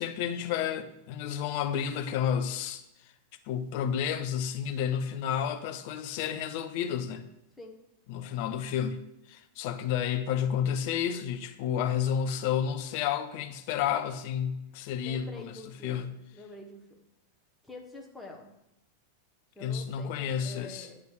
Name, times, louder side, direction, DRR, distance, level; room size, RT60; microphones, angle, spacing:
voice 1, 0.0-2.8 3.5-7.3 8.1-15.5 15.8-16.1 19.6-20.9, left 8 dB, 50° left, 0.6 m, -31 dB
voice 2, 15.0-17.0 17.6-18.5 19.5-21.0, left 2 dB, ahead, 1.3 m, -47 dB
8.5 x 3.4 x 6.3 m
figure-of-eight pair, 90°, 0 cm